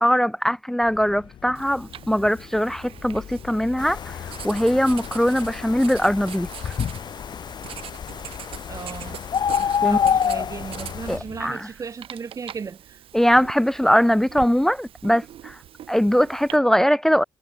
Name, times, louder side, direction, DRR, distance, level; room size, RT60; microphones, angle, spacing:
voice 1, 0.0-4.2 4.4-6.7 9.8-10.0 11.1-11.7 13.1-15.6 15.9-17.2, equal, 5° left, 0.4 m, -21 dB
sound 1, 0.8-11.5, left 9 dB, 70° left, 4.6 m, -44 dB
Writing, 1.5-16.6, right 11 dB, 80° right, 2.9 m, -42 dB
sound 2, 3.8-11.2, left 8 dB, 50° left, 1.2 m, -28 dB
voice 2, 8.7-9.2 9.6-13.0, right 5 dB, 35° right, 1.6 m, -36 dB
cardioid pair, 130°, 9 cm